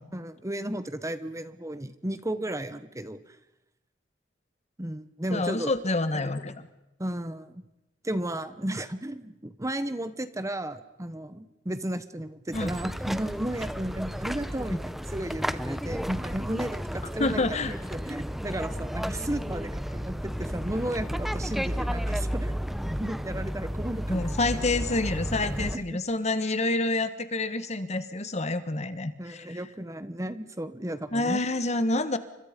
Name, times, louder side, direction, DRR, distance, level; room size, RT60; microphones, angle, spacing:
voice 1, 0.1-3.4 4.8-5.7 7.0-7.6 8.0-17.4 17.9-24.2 25.5-26.0 29.2-31.4, right 1 dB, 15° right, 12 dB, 1.1 m, -34 dB
voice 2, 5.3-6.5 12.5-12.8 17.2-17.7 24.1-29.6 31.1-32.2, left 2 dB, 35° left, 11 dB, 1.4 m, -28 dB
sound 1, 12.5-25.8, equal, ahead, 0.8 m, -32 dB
30.0 x 25.5 x 5.2 m, 0.95 s
head